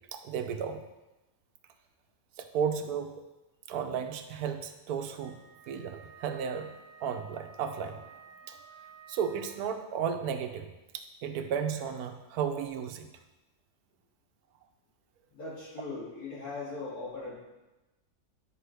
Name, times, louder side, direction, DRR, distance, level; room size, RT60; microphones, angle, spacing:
voice 1, 0.1-0.8 2.4-3.1 3.7-5.4 5.7-6.7 7.0-8.0 8.5-8.6 9.1-10.7 10.9-13.1, right 7 dB, 80° right, 7 dB, 1.1 m, -33 dB
Wind instrument woodwind instrument, 5.2-9.9, right 6 dB, 40° right, 0.9 m, -53 dB
voice 2, 15.3-17.4, left 3 dB, 75° left, -9 dB, 3.2 m, -39 dB
9.4 x 5.2 x 3.4 m, 1.1 s
omnidirectional pair, 1.6 m